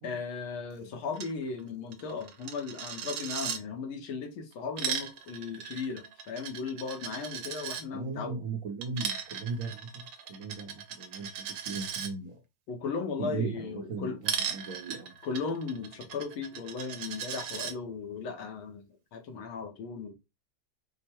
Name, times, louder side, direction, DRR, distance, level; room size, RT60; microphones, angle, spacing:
voice 1, 0.0-8.4 12.7-14.2 15.2-20.1, left 5 dB, 80° left, 1.9 m, -36 dB
Coin (dropping), 1.1-1.3 1.6-1.7 1.9-3.6 4.5-7.8 8.8-12.1 14.2-17.7, right 8 dB, 75° right, 1.3 m, -37 dB
voice 2, 7.9-12.4 13.2-15.1, right 4 dB, 55° right, 1.0 m, -38 dB
5.3 x 2.2 x 4.4 m
omnidirectional pair, 2.3 m